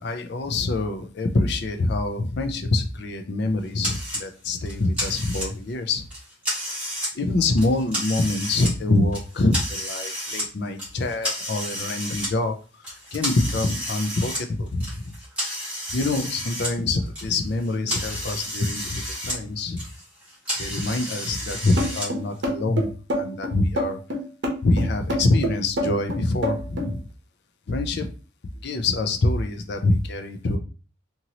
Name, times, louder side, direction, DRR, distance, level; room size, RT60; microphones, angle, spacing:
voice 1, 0.0-6.0 7.1-15.1 15.9-19.8 20.6-24.0 24.6-27.1 27.7-28.1 28.6-30.6, left 2 dB, 55° left, 7 dB, 0.5 m, -25 dB
sound 1, 3.8-4.2 4.7-5.7 6.1-7.1 7.5-8.7 9.1-10.5 10.8-12.3 12.8-16.7 17.0-19.4 19.7-22.1, equal, 5° right, 1.4 m, -31 dB
sound 2, 21.8-26.9, equal, 60° right, 0.8 m, -26 dB
2.9 x 2.6 x 2.8 m, 0.35 s
head